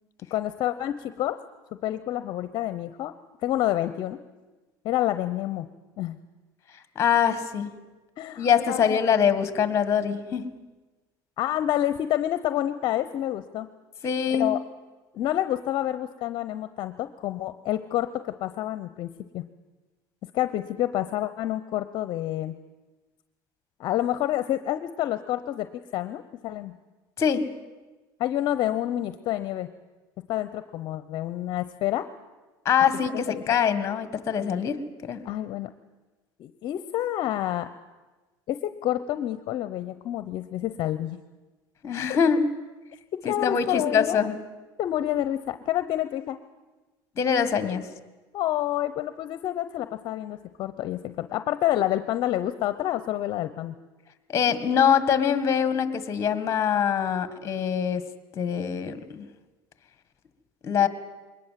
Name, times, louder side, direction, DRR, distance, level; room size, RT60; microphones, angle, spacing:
voice 1, 0.3-1.4 1.8-3.1 3.4-4.2 4.8-5.7 6.0-6.2 8.2-9.0 11.4-13.7 14.3-14.6 15.1-18.1 18.4-19.1 19.3-19.4 20.3-22.5 23.8-25.7 25.9-26.7 28.2-29.7 30.3-32.0 33.3-33.4 35.2-35.7 36.4-37.7 38.5-41.2 43.2-44.2 44.8-46.4 48.3-53.7, left 13 dB, 55° left, 12 dB, 0.8 m, -28 dB
voice 2, 7.0-7.7 8.4-10.5 14.0-14.5 27.2-27.5 32.7-35.2 41.8-42.5 43.2-44.4 47.2-47.9 54.3-58.0 58.3-59.3 60.6-60.9, left 7 dB, 30° left, 12 dB, 1.7 m, -24 dB
22.0 x 19.5 x 7.6 m, 1.2 s
cardioid pair, 130°, 9 cm